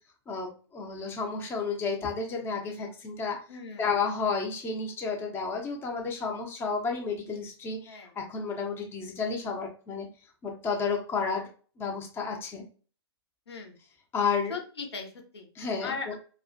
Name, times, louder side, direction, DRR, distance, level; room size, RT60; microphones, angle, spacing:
voice 1, 0.3-3.4 3.8-10.1 10.4-11.5 11.8-12.6 14.1-14.5 15.6-16.1, left 5 dB, 15° left, 1 dB, 0.5 m, -31 dB
voice 2, 3.5-3.8 7.9-8.1 13.5-13.8 14.5-15.5 15.8-16.1, left 5 dB, 70° left, 3 dB, 0.6 m, -38 dB
2.4 x 2.1 x 2.4 m, 0.38 s
figure-of-eight pair, 105°, 14 cm